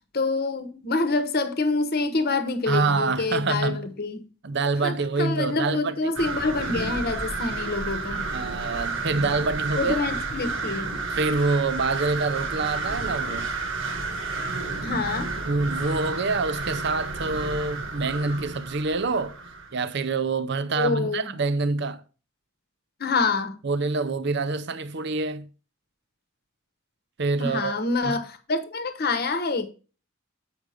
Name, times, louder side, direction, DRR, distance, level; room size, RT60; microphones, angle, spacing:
voice 1, 0.1-4.2 4.8-8.3 9.8-11.0 14.8-15.3 20.8-21.3 23.0-23.6 27.4-29.7, left 3 dB, 50° left, 1.0 m, -26 dB
voice 2, 2.7-3.8 4.4-6.1 8.3-10.0 11.1-13.5 15.5-19.4 19.7-22.0 23.6-25.5 27.2-27.7 28.0-28.2, right 3 dB, 60° right, 0.6 m, -26 dB
sound 1, 6.2-19.8, right 3 dB, 80° right, 1.5 m, -31 dB
7.9 x 5.0 x 4.9 m
head